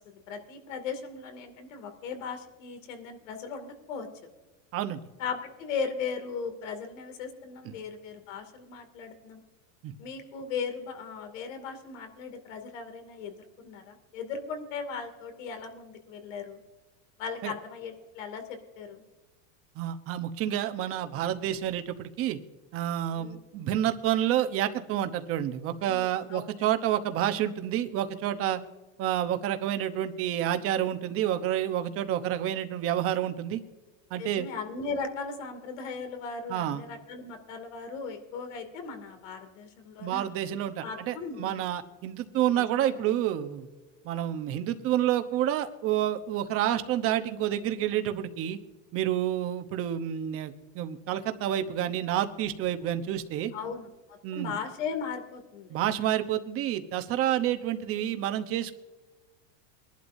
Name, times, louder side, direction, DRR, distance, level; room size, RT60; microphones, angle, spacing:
voice 1, 0.0-4.1 5.2-9.4 10.0-16.6 17.2-19.0 23.1-23.4 25.8-26.4 34.2-41.6 42.5-43.0 53.5-55.8, left 5 dB, 75° left, 6 dB, 2.6 m, -38 dB
voice 2, 19.8-22.4 22.7-28.6 29.0-33.6 34.1-34.5 36.5-36.8 40.0-43.7 44.0-48.6 48.9-53.5 54.2-54.5 55.7-58.7, right 11 dB, 35° right, 8 dB, 0.9 m, -29 dB
22.5 x 11.5 x 2.7 m, 1.2 s
supercardioid pair, 150°, 38 cm